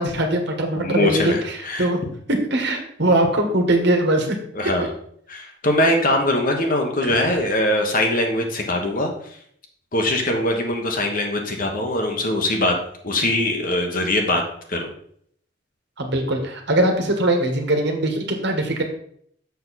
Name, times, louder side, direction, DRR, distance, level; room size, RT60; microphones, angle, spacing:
voice 1, 0.0-2.0 2.3-4.4 16.0-18.8, right 1 dB, 65° right, 3 dB, 1.5 m, -21 dB
voice 2, 0.7-1.9 4.5-4.9 5.3-9.1 9.9-12.8 13.0-14.4 14.7-14.9, left 1 dB, 45° left, 3 dB, 1.4 m, -22 dB
6.9 x 6.4 x 4.2 m, 0.65 s
head